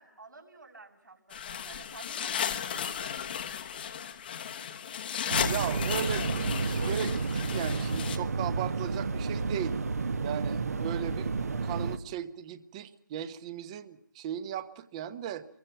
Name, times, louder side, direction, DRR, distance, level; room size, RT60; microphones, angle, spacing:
voice 1, 0.0-3.6, right 3 dB, 70° right, 0 dB, 7.3 m, -51 dB
RG HO Slot Car with Crashes, 1.3-8.2, left 8 dB, 30° left, 1.3 m, -35 dB
sound 1, 5.3-12.0, right 4 dB, 50° right, 1.5 m, -31 dB
voice 2, 5.5-9.8 10.2-15.5, right 10 dB, 20° right, 13 dB, 1.2 m, -37 dB
27.5 x 23.0 x 5.8 m, 0.69 s
figure-of-eight pair, 150°, 10 cm